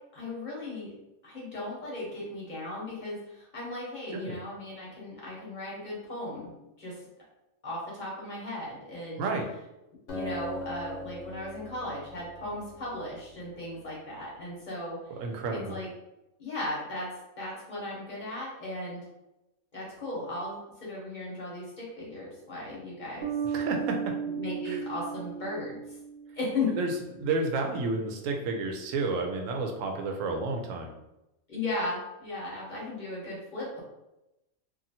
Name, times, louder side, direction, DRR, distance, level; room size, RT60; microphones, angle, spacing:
voice 1, 0.1-0.9 1.2-7.0 7.6-9.3 10.1-15.0 15.5-15.9 16.4-17.1 17.4-19.0 19.7-23.3 24.2-25.8 26.3-26.7 31.5-33.8, left 2 dB, 40° left, -5 dB, 1.0 m, -36 dB
Acoustic guitar, 10.1-13.7, left 1 dB, 70° left, 1.0 m, -41 dB
voice 2, 15.1-15.8 23.5-24.1 24.7-24.8 26.7-26.9 27.2-30.9, right 3 dB, 80° right, 3 dB, 0.9 m, -31 dB
sound 1, 23.2-26.6, right 7 dB, 55° right, 1.0 m, -35 dB
2.7 x 2.4 x 2.7 m, 0.93 s
omnidirectional pair, 1.3 m